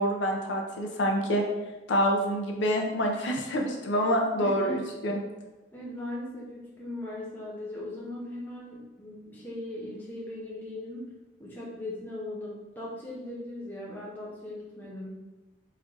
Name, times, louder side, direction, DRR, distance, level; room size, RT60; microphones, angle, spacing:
voice 1, 0.0-1.4 1.9-5.1, equal, 70° left, 1 dB, 0.6 m, -27 dB
voice 2, 4.4-4.8 5.7-11.1 11.4-15.3, left 1 dB, 10° left, -6 dB, 0.5 m, -39 dB
3.2 x 2.5 x 3.6 m, 1.1 s
head